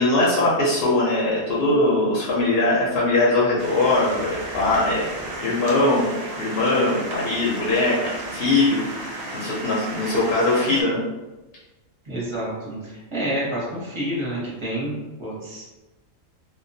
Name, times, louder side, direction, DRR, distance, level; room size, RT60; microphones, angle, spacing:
voice 1, 0.0-5.0 5.4-6.1 6.4-11.0, left 2 dB, 60° left, -5 dB, 0.6 m, -21 dB
sound 1, 3.6-10.8, right 1 dB, 85° right, 0.3 m, -33 dB
voice 2, 12.0-15.7, right 1 dB, 25° right, -8 dB, 0.7 m, -29 dB
2.2 x 2.2 x 2.6 m, 1.1 s
omnidirectional pair, 1.4 m